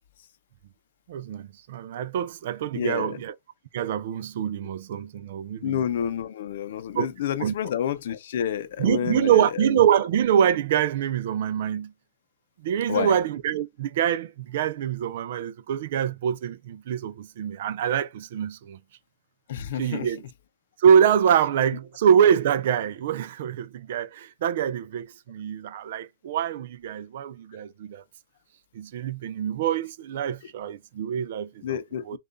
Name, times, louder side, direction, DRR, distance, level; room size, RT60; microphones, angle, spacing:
voice 1, 1.1-3.3 3.7-5.8 6.9-7.1 7.4-7.5 8.8-11.9 12.6-18.8 19.8-20.2 20.8-28.0 28.7-31.7 32.1-32.2, right 8 dB, 60° right, 0.4 m, -25 dB
voice 2, 2.7-3.2 5.6-9.4 12.9-13.2 19.5-20.1 31.6-32.2, left 9 dB, 65° left, 0.6 m, -29 dB
6.6 x 2.4 x 2.6 m
hypercardioid pair, 150°, 0 cm